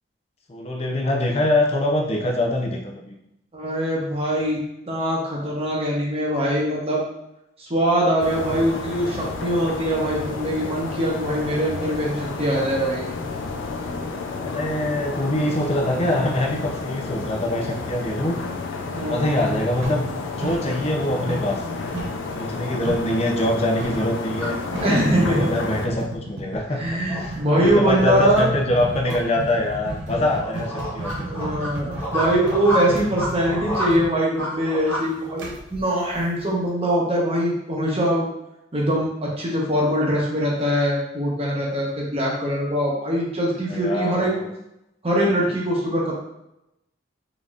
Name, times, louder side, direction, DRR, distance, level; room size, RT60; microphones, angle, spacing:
voice 1, 0.5-3.1 14.3-18.4 19.0-20.0 20.4-21.6 22.3-24.6 25.3-31.7 43.6-44.5, left 1 dB, 35° left, 0 dB, 0.5 m, -24 dB
voice 2, 3.5-4.6 4.9-7.0 7.6-13.1 18.9-19.5 24.8-25.5 26.8-28.5 31.2-38.3 38.7-44.3 45.0-46.1, equal, 30° right, -3 dB, 0.9 m, -22 dB
sound 1, 8.2-25.9, left 3 dB, 85° left, 0.5 m, -31 dB
sound 2, 19.8-21.0 21.3-23.2 23.8-24.1 24.4-24.5 24.7-25.1 25.9-36.7, right 1 dB, 70° right, 0.7 m, -33 dB
sound 3, 24.4-35.1, equal, 10° left, 1.0 m, -31 dB
3.9 x 3.4 x 2.4 m, 0.86 s
head